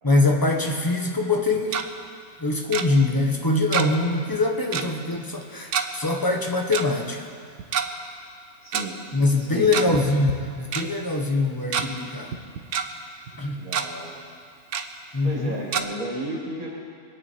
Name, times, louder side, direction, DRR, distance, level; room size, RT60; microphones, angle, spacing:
voice 1, 0.0-1.9 2.4-7.3 9.1-12.3 13.4-13.7 15.1-15.6, left 2 dB, 15° left, 2 dB, 1.3 m, -23 dB
Tick-tock, 1.4-1.8 2.7-2.8 3.7-4.1 4.3-4.4 4.7-4.9 5.7-5.9 6.7-6.8 7.6-7.9 8.7-8.8 9.6-10.0 10.3-10.4 10.7-10.8 11.4-11.8 12.3-12.8 13.3-13.4 13.7-13.9 14.7-14.8 15.7-15.8, right 7 dB, 65° right, 1.1 m, -26 dB
voice 2, 8.6-9.0 9.4-10.0 13.6-14.1 15.2-16.8, right 1 dB, 85° right, -3 dB, 2.6 m, -33 dB
24.5 x 9.3 x 4.6 m, 2.3 s
omnidirectional pair, 1.4 m